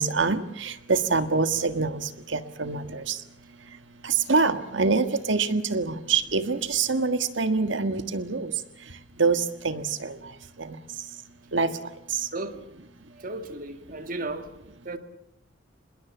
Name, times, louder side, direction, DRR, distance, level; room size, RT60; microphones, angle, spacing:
voice 1, 0.0-3.2 4.0-8.5 9.2-10.2 10.6-10.8 11.5-11.7, right 4 dB, 70° right, 1.7 m, -25 dB
voice 2, 13.1-14.5 14.8-15.0, right 2 dB, 50° right, 2.0 m, -34 dB
26.5 x 21.0 x 7.3 m
head